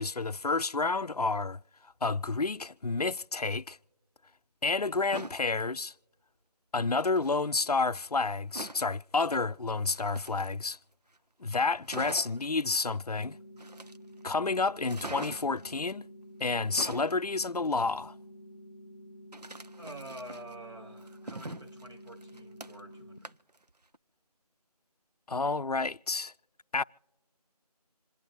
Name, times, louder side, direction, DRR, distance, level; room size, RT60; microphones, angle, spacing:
voice 1, 0.0-1.6 2.0-3.8 4.6-5.9 6.7-10.8 11.4-13.4 14.2-16.1 16.4-18.1 25.3-26.3 26.7-26.8, left 3 dB, 70° left, 0.5 m, -30 dB
sound 1, 4.9-5.4 7.0-7.4 8.5-8.9 9.8-10.8 11.2-11.3 11.5-11.6 11.9-12.5 13.6-14.2 14.8-15.6 16.5-17.2 19.3-20.6 21.0-22.9 23.2-23.6 23.9-24.0, right 2 dB, 75° right, 0.8 m, -43 dB
sound 2, 13.2-23.2, equal, 35° left, 0.8 m, -50 dB
voice 2, 19.8-23.4, right 1 dB, 45° right, 2.5 m, -47 dB
27.0 x 11.5 x 3.1 m
figure-of-eight pair, 180°, 21 cm